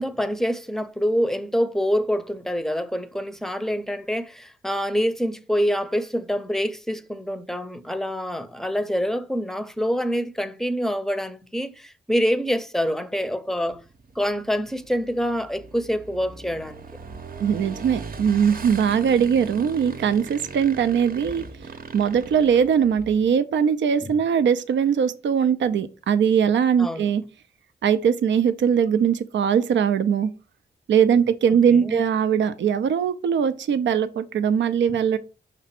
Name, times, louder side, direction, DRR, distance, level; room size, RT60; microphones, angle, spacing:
voice 1, 0.0-13.8 14.2-16.9 24.0-24.1 26.8-27.1 31.5-32.0, equal, ahead, 0.6 m, -26 dB
Motorcycle / Engine, 13.7-23.4, right 4 dB, 55° right, 0.8 m, -39 dB
voice 2, 17.4-21.4 21.9-27.2 27.8-30.3 30.9-35.2, right 7 dB, 90° right, 0.5 m, -21 dB
5.8 x 3.4 x 5.8 m
wide cardioid pair, 100°, 18 cm